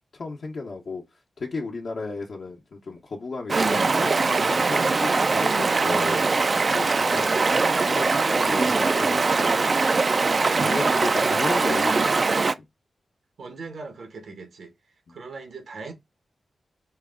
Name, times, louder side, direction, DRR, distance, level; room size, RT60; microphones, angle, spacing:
voice 1, 0.1-1.0 1.4-4.1 4.5-6.2 6.7-7.4 7.8-9.8 10.5-12.4, left 3 dB, 65° left, 0.9 m, -34 dB
Stream, 3.5-12.5, right 4 dB, 45° right, 0.3 m, -22 dB
voice 2, 8.4-9.0 13.4-14.7 15.1-15.9, right 4 dB, 85° right, 1.3 m, -39 dB
4.7 x 2.3 x 3.6 m
wide cardioid pair, 95°, 0 cm